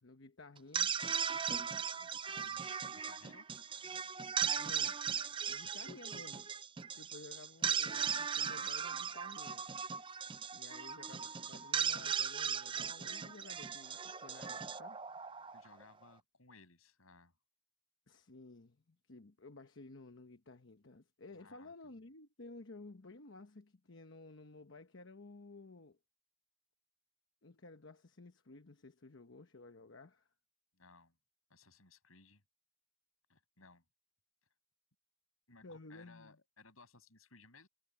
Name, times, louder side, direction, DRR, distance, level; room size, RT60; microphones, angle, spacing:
voice 1, 0.0-0.9 4.5-5.0 5.5-6.5 6.9-9.6 10.5-15.0 18.1-26.0 27.4-30.3 35.6-36.4, left 3 dB, 60° left, 1.0 m, -54 dB
sound 1, 0.6-15.8, right 7 dB, 25° right, 0.5 m, -38 dB
voice 2, 2.0-3.5 15.5-17.3 21.3-21.7 30.7-31.2 31.5-32.4 33.3-33.8 35.5-37.7, left 3 dB, 80° left, 8.0 m, -61 dB
head